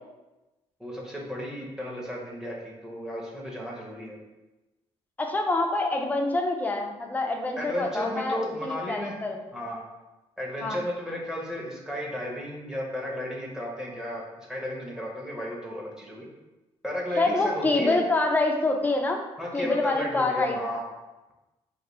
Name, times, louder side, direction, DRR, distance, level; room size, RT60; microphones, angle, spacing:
voice 1, 0.8-4.2 7.6-9.2 9.5-9.8 10.4-14.2 14.5-16.3 16.8-18.0 19.4-20.8, equal, 5° right, -2 dB, 0.8 m, -34 dB
voice 2, 5.2-9.4 10.6-10.8 17.2-19.3 19.5-20.6, left 2 dB, 15° left, 3 dB, 0.4 m, -26 dB
4.0 x 2.6 x 3.0 m, 1.1 s
cardioid pair, 135°, 12 cm